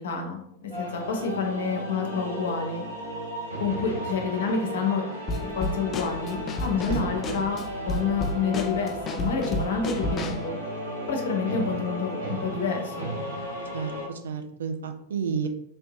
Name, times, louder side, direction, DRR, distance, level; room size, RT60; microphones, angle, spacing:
voice 1, 0.0-2.8 3.6-5.0 5.5-10.6 11.1-13.1, left 5 dB, 60° left, 3 dB, 0.6 m, -29 dB
sound 1, 0.7-14.1, right 1 dB, 80° right, 1.1 m, -34 dB
Drum kit / Snare drum, 5.3-10.5, left 2 dB, 25° left, 0.3 m, -32 dB
voice 2, 6.9-7.4 13.7-15.5, right 6 dB, 65° right, 6 dB, 0.4 m, -32 dB
3.3 x 2.7 x 2.7 m, 0.72 s
figure-of-eight pair, 90°, 0 cm